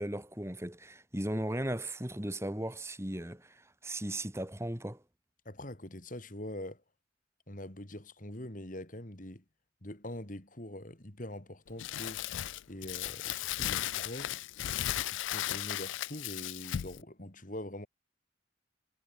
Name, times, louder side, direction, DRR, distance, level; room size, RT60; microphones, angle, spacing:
voice 1, 0.0-5.0, right 1 dB, 15° right, 2.3 m, -37 dB
voice 2, 5.4-6.8 7.5-9.4 9.8-12.2 12.7-14.3 15.1-17.9, left 1 dB, 40° left, 3.0 m, -43 dB
Crumpling crinkling, 11.8-17.0, left 12 dB, 75° left, 0.4 m, -36 dB
head